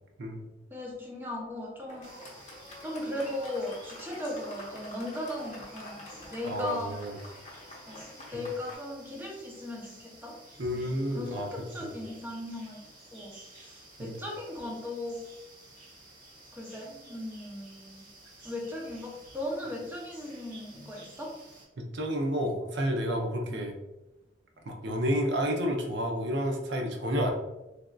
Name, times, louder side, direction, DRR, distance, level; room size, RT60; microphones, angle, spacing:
voice 1, 0.7-2.3 2.8-7.0 7.9-10.4 10.7-15.3 16.5-18.1 18.4-21.4 23.5-23.6, left 1 dB, 10° right, -2 dB, 0.6 m, -38 dB
Fireworks, 1.9-8.7, left 1 dB, 40° left, 0.8 m, -47 dB
sound 1, 2.0-21.6, right 2 dB, 50° right, 1.1 m, -53 dB
voice 2, 6.5-7.1 8.3-8.5 10.6-11.9 14.0-14.2 21.9-23.7 24.7-27.3, equal, 65° right, 2 dB, 0.5 m, -30 dB
3.3 x 2.5 x 2.3 m, 0.98 s
head